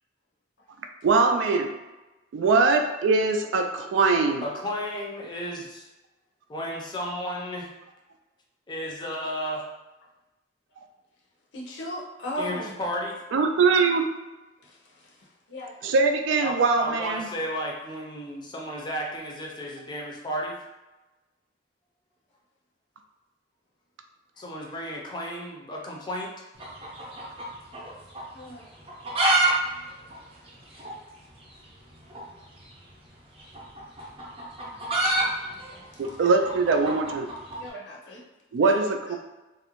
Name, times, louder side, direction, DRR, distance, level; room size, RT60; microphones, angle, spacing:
voice 1, 1.0-1.7 2.3-4.4 13.3-14.1 15.8-17.2 36.0-37.3 38.5-39.2, right 4 dB, 85° right, 5 dB, 0.3 m, -22 dB
voice 2, 4.4-5.9 6.5-7.7 8.7-9.6 12.4-13.2 16.4-20.6 24.4-26.3, equal, 25° left, -1 dB, 0.4 m, -33 dB
voice 3, 11.5-12.8 14.6-15.1 15.5-15.7 28.3-28.7 34.7-36.2 37.6-38.2 38.6-38.9, equal, 70° left, -3 dB, 0.6 m, -38 dB
sound 1, 26.5-27.9 28.1-28.2 28.8-29.5 29.8-29.9 30.1-30.2 30.8-30.9 32.1-32.3 33.4-37.6, right 2 dB, 30° right, 0.6 m, -26 dB
2.4 x 2.1 x 3.0 m, 1.1 s
head